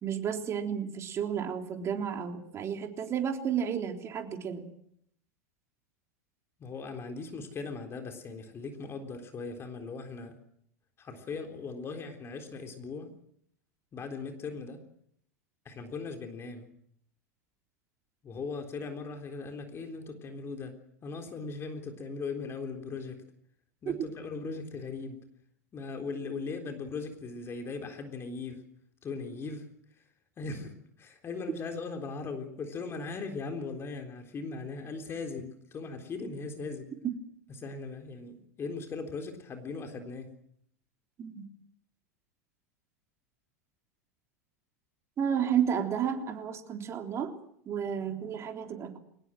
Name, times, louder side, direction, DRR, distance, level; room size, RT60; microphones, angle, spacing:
voice 1, 0.0-4.7 23.9-24.0 41.2-41.4 45.2-47.3 47.7-49.0, right 8 dB, 30° right, 4 dB, 3.7 m, -32 dB
voice 2, 6.6-10.4 11.0-13.1 13.9-14.8 15.7-16.7 18.2-23.2 23.8-25.3 25.7-28.7 29.0-30.0 30.4-36.9 37.6-40.4, left 4 dB, 30° left, 5 dB, 3.8 m, -39 dB
23.0 x 20.0 x 7.7 m, 0.69 s
hypercardioid pair, 90°, 9 cm